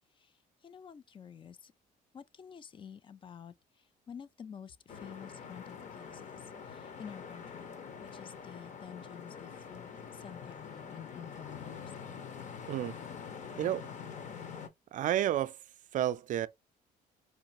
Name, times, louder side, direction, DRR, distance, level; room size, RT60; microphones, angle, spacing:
voice 1, 0.6-1.7 2.1-3.5 4.1-6.4 6.7-11.9, left 7 dB, 30° left, 0.4 m, -49 dB
sound 1, 4.9-14.7, left 6 dB, 45° left, 0.9 m, -45 dB
voice 2, 13.6-13.9 14.9-15.6 15.9-16.5, right 12 dB, 50° right, 0.4 m, -30 dB
4.6 x 2.4 x 2.9 m
cardioid pair, 110°, 17 cm